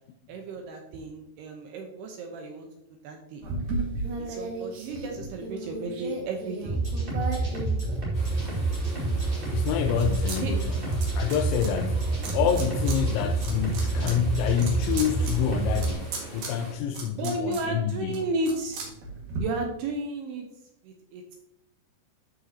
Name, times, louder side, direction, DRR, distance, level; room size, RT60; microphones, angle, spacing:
voice 1, 0.3-3.4 4.2-6.8 10.4-10.5 17.1-18.8 19.4-20.5 20.8-21.4, right 2 dB, 75° right, 2 dB, 2.6 m, -33 dB
sound 1, 3.4-8.5 9.0-10.4 10.6-11.7 12.2-13.0 13.3-19.4, right 3 dB, 60° right, 3.1 m, -36 dB
sound 2, 6.6-15.9, right 2 dB, 25° right, 1.1 m, -28 dB
sound 3, 8.1-16.7, right 1 dB, 25° left, 1.3 m, -44 dB
voice 2, 9.5-18.2, left 9 dB, 85° left, 5 dB, 2.9 m, -28 dB
12.5 x 5.4 x 2.8 m, 0.83 s
omnidirectional pair, 5.3 m